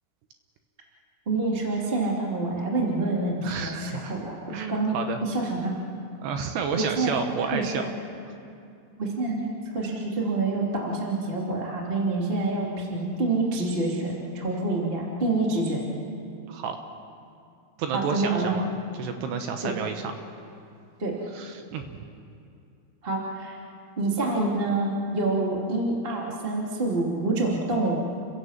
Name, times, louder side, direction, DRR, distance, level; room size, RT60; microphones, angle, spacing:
voice 1, 1.3-4.4 4.7-5.7 6.8-7.1 7.5-7.8 9.0-15.8 17.9-18.6 19.6-19.7 21.0-21.2 23.0-23.6 24.0-28.0, right 2 dB, 15° right, -2 dB, 1.9 m, -27 dB
voice 2, 3.4-4.1 4.5-5.2 6.2-7.8 16.5-16.8 17.8-18.7 18.9-20.1 21.3-21.9, right 6 dB, 70° right, 6 dB, 2.8 m, -31 dB
29.5 x 16.5 x 7.4 m, 2.5 s
omnidirectional pair, 5.7 m